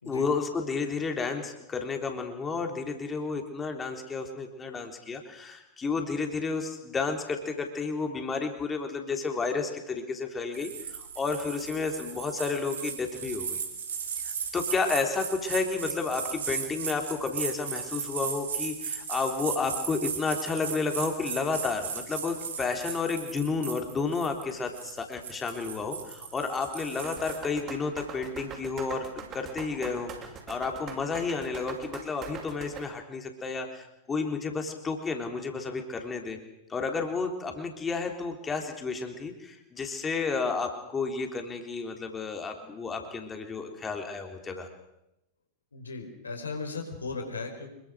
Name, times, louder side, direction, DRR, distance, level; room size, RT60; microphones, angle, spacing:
voice 1, 0.1-13.6 14.2-36.4 36.7-44.7, left 4 dB, 20° left, 4 dB, 3.6 m, -31 dB
sound 1, 10.5-27.4, right 7 dB, 65° right, 4.2 m, -36 dB
sound 2, 27.0-32.8, right 7 dB, 30° right, 6.4 m, -42 dB
voice 2, 45.7-47.7, left 4 dB, 75° left, 5 dB, 4.1 m, -37 dB
26.5 x 23.0 x 6.4 m, 0.86 s
figure-of-eight pair, 90°, 0 cm